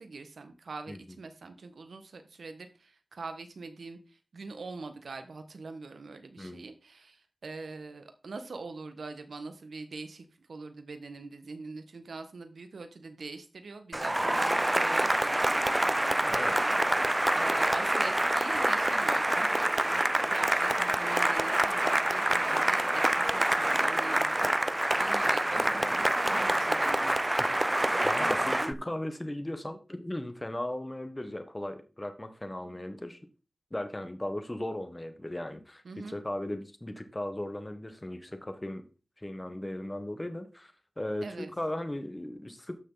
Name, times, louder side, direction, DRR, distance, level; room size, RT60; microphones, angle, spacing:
voice 1, 0.0-16.7 17.3-27.7 35.8-36.2 41.2-41.5, right 3 dB, 90° right, 8 dB, 1.4 m, -43 dB
Cheering / Applause, 13.9-28.7, right 1 dB, 20° right, 0.6 m, -26 dB
voice 2, 28.0-33.2 33.7-38.8 39.2-42.8, left 1 dB, 20° left, 8 dB, 1.4 m, -37 dB
13.0 x 6.2 x 4.0 m, 0.33 s
wide cardioid pair, 55°, 0 cm